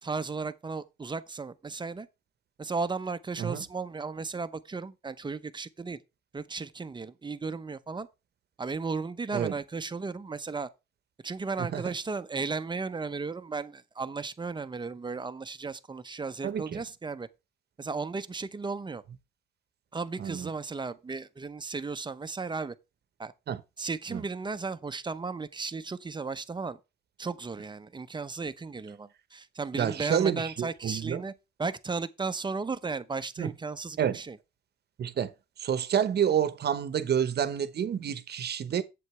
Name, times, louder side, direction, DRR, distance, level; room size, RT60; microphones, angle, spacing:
voice 1, 0.0-2.1 2.6-6.0 6.3-8.1 8.6-10.7 11.2-17.3 17.8-19.0 19.9-22.7 23.2-23.3 23.8-26.8 27.2-31.3 31.6-34.4, right 4 dB, 25° right, 0.7 m, -35 dB
voice 2, 11.6-11.9 16.4-16.8 20.2-20.5 23.5-23.6 24.1-24.2 29.8-31.2 33.4-33.5 34.0-34.2 35.0-35.3 35.6-38.8, right 8 dB, 55° right, 1.0 m, -29 dB
7.9 x 7.9 x 3.3 m
cardioid pair, 90°, 20 cm